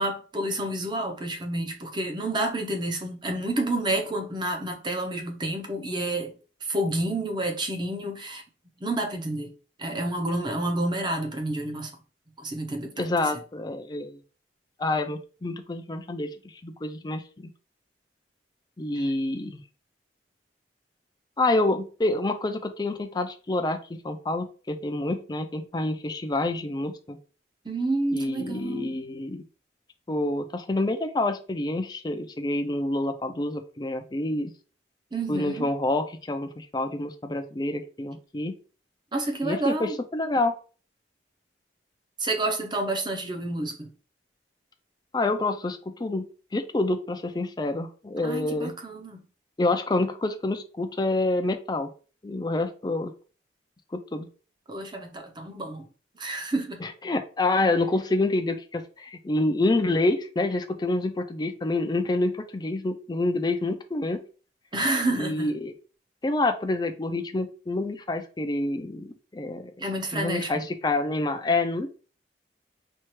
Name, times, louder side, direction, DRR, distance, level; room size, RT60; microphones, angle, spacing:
voice 1, 0.0-6.3 6.6-8.4 8.8-9.5 9.8-11.9 12.4-13.1 19.0-19.1 27.6-28.9 35.1-35.7 39.1-39.9 42.2-43.9 48.2-49.2 54.7-55.9 56.1-56.8 64.7-65.5 69.8-70.7, right 1 dB, 25° right, 0.7 m, -29 dB
voice 2, 13.0-14.2 14.8-16.3 16.6-17.5 18.8-19.6 21.4-27.2 28.1-29.4 30.1-34.5 35.3-38.5 39.4-40.5 45.1-46.3 46.5-48.7 49.6-51.9 52.2-53.1 53.9-54.3 56.8-64.2 65.1-65.7 66.2-69.7 70.1-71.9, left 2 dB, 25° left, 0.4 m, -27 dB
4.4 x 2.4 x 3.1 m
head